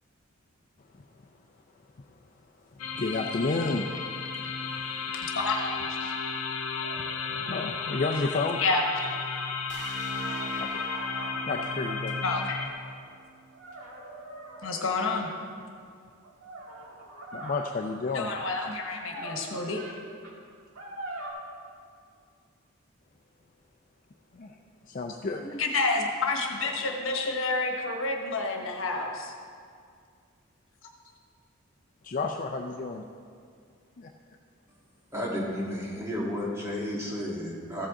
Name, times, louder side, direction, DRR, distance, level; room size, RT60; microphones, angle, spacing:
sound 1, 2.8-12.7, left 5 dB, 85° left, 0.8 m, -34 dB
voice 1, 2.9-3.9 7.4-8.6 10.6-10.9 11.5-12.5 17.3-18.3 24.3-24.5 24.9-25.5 32.0-33.0 34.0-34.1, left 3 dB, 40° left, 2 dB, 0.4 m, -31 dB
voice 2, 5.3-5.7 6.0-6.1 8.6-8.8 12.2-12.6 14.6-15.3 18.1-19.8 25.4-29.3, left 3 dB, 65° left, 2 dB, 1.2 m, -29 dB
sound 2, 6.8-9.5 10.2-12.9 13.5-15.6 16.2-17.9 18.9-20.0 20.2-20.3 20.7-21.3, right 1 dB, 80° right, 1.7 m, -44 dB
sound 3, 9.7-13.5, right 3 dB, 55° right, 1.0 m, -41 dB
voice 3, 35.1-37.9, equal, 15° right, -5 dB, 2.0 m, -32 dB
14.5 x 7.7 x 3.7 m, 2.2 s
head